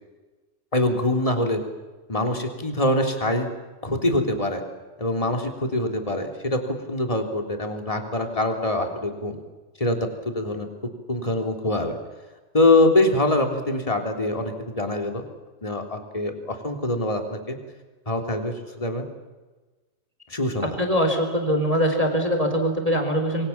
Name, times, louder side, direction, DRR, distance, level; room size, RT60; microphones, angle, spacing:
voice 1, 0.7-1.6 2.1-3.5 3.8-4.6 5.0-9.4 9.8-10.0 10.2-10.7 11.1-12.0 12.5-15.2 15.6-17.6 18.1-19.1 20.3-20.7, left 1 dB, 10° left, 5 dB, 2.9 m, -24 dB
voice 2, 20.6-23.5, equal, 10° right, 5 dB, 3.7 m, -22 dB
27.5 x 23.5 x 7.3 m, 1.2 s
omnidirectional pair, 4.1 m